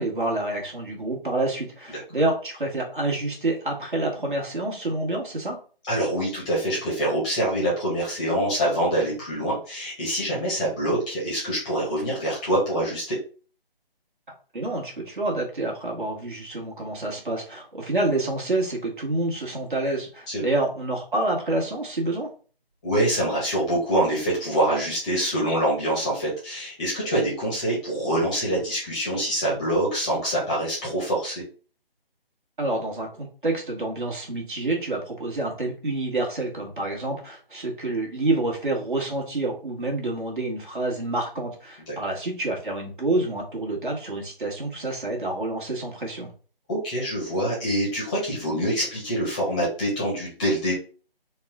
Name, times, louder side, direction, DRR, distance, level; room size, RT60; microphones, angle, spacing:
voice 1, 0.0-5.6 14.5-22.3 32.6-46.3, right 2 dB, 55° right, 0 dB, 1.6 m, -28 dB
voice 2, 5.9-13.2 20.3-20.4 22.8-31.4 41.9-42.0 46.7-50.7, right 1 dB, 10° left, -5 dB, 0.8 m, -25 dB
4.0 x 2.3 x 3.6 m, 0.39 s
figure-of-eight pair, 155°, 30 cm